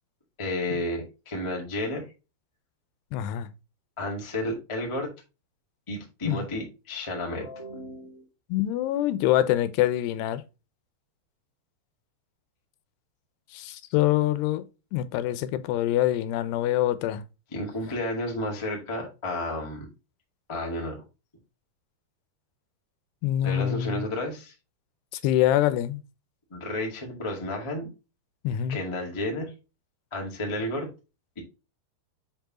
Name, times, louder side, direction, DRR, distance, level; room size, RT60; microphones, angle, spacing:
voice 1, 0.4-2.0 4.0-5.1 5.9-8.2 17.5-19.9 20.5-21.0 23.4-24.5 26.5-27.9 28.7-29.5 30.1-30.9 31.3-31.4, left 1 dB, 35° left, 0.4 m, -32 dB
voice 2, 3.1-3.5 6.3-6.5 8.5-10.4 13.5-14.7 14.9-17.2 23.2-24.1 25.1-26.0 28.4-28.8, left 13 dB, 85° left, 2.7 m, -25 dB
7.5 x 4.6 x 2.9 m
omnidirectional pair, 4.7 m